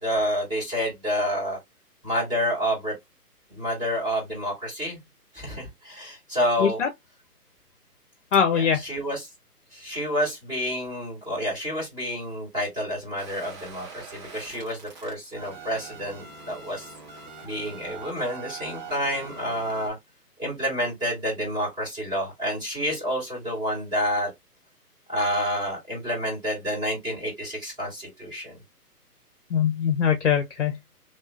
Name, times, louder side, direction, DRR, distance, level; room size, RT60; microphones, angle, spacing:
voice 1, 0.0-1.6 2.0-2.9 3.5-5.0 5.3-6.8 8.5-9.3 9.7-16.9 17.4-20.0 20.4-24.3 25.1-28.6, equal, 10° right, 2.4 m, -29 dB
voice 2, 8.3-8.8 29.5-30.8, left 7 dB, 50° left, 0.8 m, -22 dB
sound 1, 13.2-19.9, right 4 dB, 30° right, 1.5 m, -43 dB
3.6 x 3.2 x 2.7 m
figure-of-eight pair, 145°, 47 cm